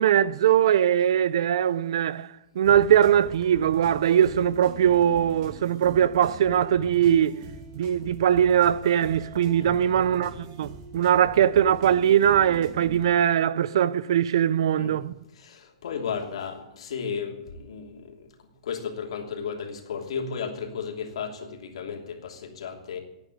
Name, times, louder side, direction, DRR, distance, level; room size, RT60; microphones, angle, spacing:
voice 1, 0.0-2.3 2.6-7.4 7.8-10.3 10.6-15.1, right 10 dB, 55° right, 0.5 m, -21 dB
sound 1, 2.6-13.1, right 2 dB, 30° right, 2.5 m, -43 dB
voice 2, 9.3-10.0 14.8-18.3 18.6-23.0, left 6 dB, 70° left, 3.0 m, -34 dB
13.0 x 9.5 x 9.6 m
supercardioid pair, 175°, 3 cm